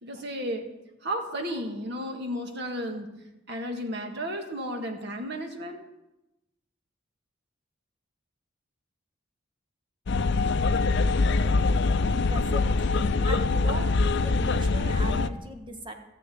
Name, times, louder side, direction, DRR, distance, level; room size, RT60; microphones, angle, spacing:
voice 1, 0.0-0.7 1.0-3.1 3.5-5.8, equal, 60° right, 4 dB, 1.8 m, -33 dB
sound 1, 10.1-15.3, left 3 dB, 60° left, 0.5 m, -24 dB
voice 2, 12.1-13.9 14.2-15.9, equal, 25° right, 4 dB, 1.4 m, -39 dB
13.5 x 6.9 x 9.3 m, 0.94 s
head